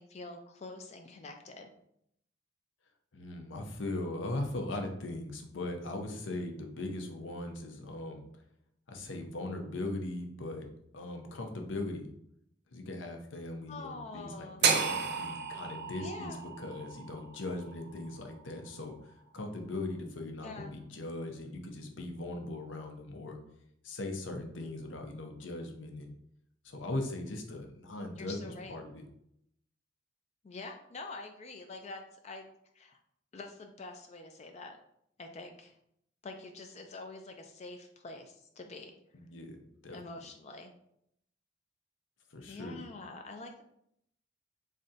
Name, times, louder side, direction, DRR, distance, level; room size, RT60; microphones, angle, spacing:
voice 1, 0.0-1.7 13.7-14.7 16.0-16.4 20.4-20.7 28.2-28.8 30.4-32.5 32.7-33.0 33.3-34.8 35.2-35.8 36.2-38.9 39.9-40.7 42.4-43.6, left 3 dB, 35° left, 5 dB, 0.3 m, -46 dB
voice 2, 3.1-8.2 8.9-10.7 10.9-12.1 12.7-23.4 23.8-26.1 26.6-29.0 39.1-40.0 42.3-42.8, left 2 dB, 70° left, 4 dB, 0.6 m, -39 dB
sound 1, 14.6-18.7, right 5 dB, 55° right, 0.4 m, -33 dB
3.7 x 3.2 x 2.7 m, 0.73 s
head